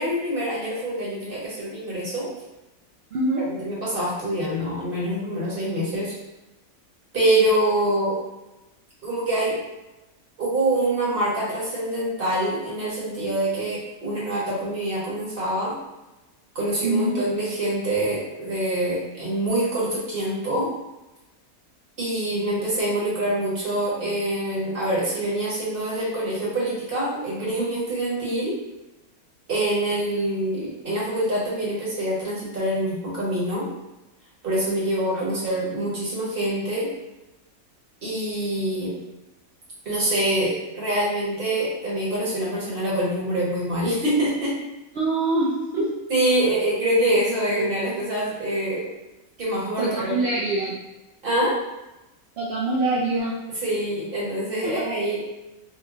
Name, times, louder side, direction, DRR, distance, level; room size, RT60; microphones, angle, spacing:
voice 1, 0.0-2.3 3.4-6.1 7.1-8.2 9.0-9.6 10.4-15.8 16.5-20.7 22.0-28.5 29.5-33.7 34.4-36.9 38.0-39.0 39.8-44.5 46.1-48.9 49.4-50.2 51.2-51.5 53.6-55.2, right 1 dB, 40° right, -7 dB, 1.2 m, -25 dB
voice 2, 3.1-3.4 16.8-17.2 45.0-45.8 49.8-50.8 52.4-53.3 54.6-54.8, right 2 dB, 60° right, -6 dB, 0.7 m, -24 dB
3.1 x 2.2 x 3.7 m, 1.0 s
omnidirectional pair, 1.5 m